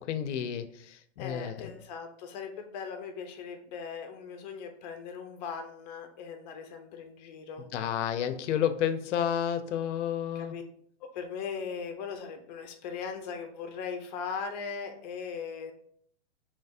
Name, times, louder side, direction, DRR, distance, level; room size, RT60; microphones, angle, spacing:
voice 1, 0.0-1.7 7.7-10.5, left 9 dB, 75° left, 9 dB, 0.6 m, -31 dB
voice 2, 1.2-7.7 10.3-10.6 11.0-15.7, left 6 dB, 35° left, 5 dB, 0.7 m, -39 dB
3.3 x 3.1 x 4.1 m, 0.64 s
supercardioid pair, 160°, 36 cm